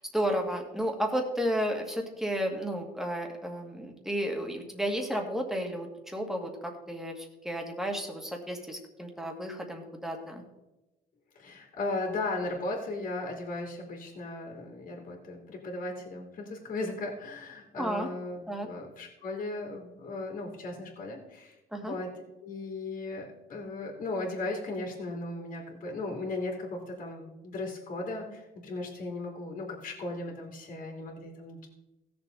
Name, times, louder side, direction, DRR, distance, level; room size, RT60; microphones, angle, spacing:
voice 1, 0.0-10.4 17.8-18.1 18.5-18.7 21.7-22.0, equal, ahead, 2 dB, 2.1 m, -32 dB
voice 2, 11.3-22.1 22.4-31.7, left 2 dB, 50° left, 0 dB, 2.9 m, -36 dB
16.5 x 6.9 x 3.9 m, 0.99 s
cardioid pair, 110°, 17 cm